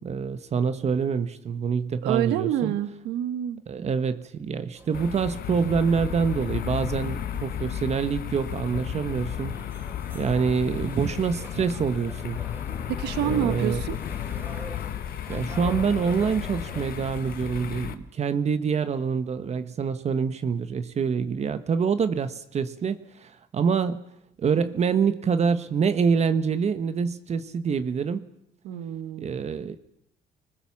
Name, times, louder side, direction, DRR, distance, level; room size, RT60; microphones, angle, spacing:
voice 1, 0.0-2.7 3.7-9.5 10.1-12.4 13.2-13.8 15.3-24.0 24.4-28.3 29.2-29.8, right 6 dB, 40° right, 1.2 m, -26 dB
voice 2, 2.0-3.6 13.0-14.0 28.6-29.3, right 11 dB, 85° right, 1.5 m, -27 dB
sound 1, 4.7-17.7, right 1 dB, 10° right, 4.3 m, -47 dB
sound 2, 4.9-17.9, left 10 dB, 60° left, 1.4 m, -33 dB
25.0 x 20.0 x 7.3 m
cardioid pair, 110°, 17 cm